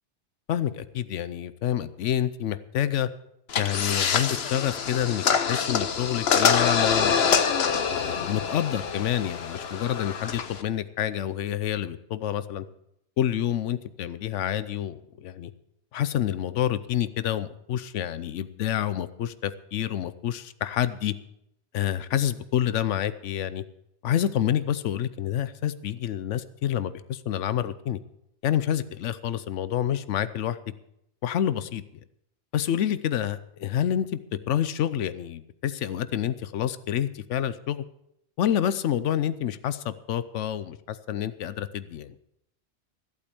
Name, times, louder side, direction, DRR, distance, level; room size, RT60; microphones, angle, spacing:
voice 1, 0.5-3.1 3.6-7.4 7.9-12.6 13.2-15.5 15.9-21.1 21.7-23.6 24.0-28.0 28.4-30.6 31.2-31.8 32.5-34.1 34.5-37.8 38.4-42.2, left 10 dB, 90° left, 14 dB, 1.0 m, -28 dB
sound 1, 3.5-10.6, left 6 dB, 60° left, 1.1 m, -25 dB
14.5 x 8.5 x 7.0 m, 0.78 s
omnidirectional pair, 1.2 m